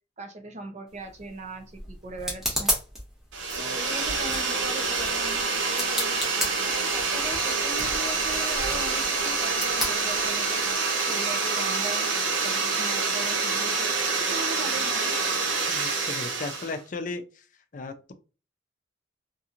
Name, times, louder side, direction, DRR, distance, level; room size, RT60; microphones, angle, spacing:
voice 1, 0.2-2.7 3.5-10.6 11.1-12.1 12.4-15.1, right 2 dB, 35° right, 4 dB, 0.6 m, -39 dB
sound 1, 0.9-10.7, equal, ahead, 0.8 m, -35 dB
sound 2, 3.3-16.8, right 4 dB, 85° right, 0.7 m, -27 dB
voice 2, 15.7-17.4 17.7-18.1, left 3 dB, 40° left, 7 dB, 0.4 m, -36 dB
2.9 x 2.6 x 2.5 m, 0.34 s
head